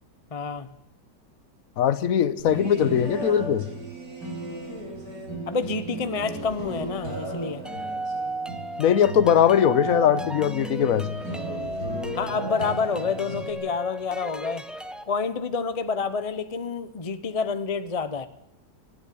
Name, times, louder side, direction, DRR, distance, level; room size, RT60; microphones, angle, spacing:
voice 1, 0.3-0.7 5.5-7.6 12.1-14.7 15.1-18.3, left 5 dB, 25° left, 11 dB, 0.8 m, -28 dB
voice 2, 1.8-3.7 8.8-11.1, left 9 dB, 55° left, 15 dB, 1.3 m, -20 dB
sound 1, 2.4-13.5, right 1 dB, 55° right, 4.6 m, -35 dB
sound 2, 7.6-15.0, right 1 dB, ahead, 0.8 m, -35 dB
19.5 x 15.5 x 8.6 m, 0.77 s
omnidirectional pair, 1.9 m